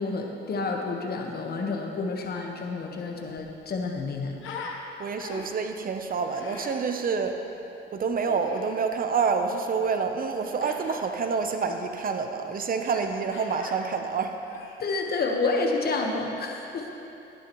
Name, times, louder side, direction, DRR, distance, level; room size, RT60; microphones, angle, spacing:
voice 1, 0.0-4.4 14.8-16.9, left 3 dB, 50° left, 2 dB, 1.3 m, -29 dB
Human voice, 2.8-2.9 3.2-4.8 5.2-5.7 6.3-6.8 8.2-8.7 10.6-11.0 11.6-11.8 12.8-13.1 13.3-13.8 14.3-15.4, left 5 dB, 80° left, 1.3 m, -42 dB
voice 2, 5.0-7.4 7.9-14.4, right 5 dB, 45° right, 6 dB, 0.8 m, -28 dB
13.5 x 11.0 x 3.1 m, 2.9 s
cardioid pair, 90°, 20 cm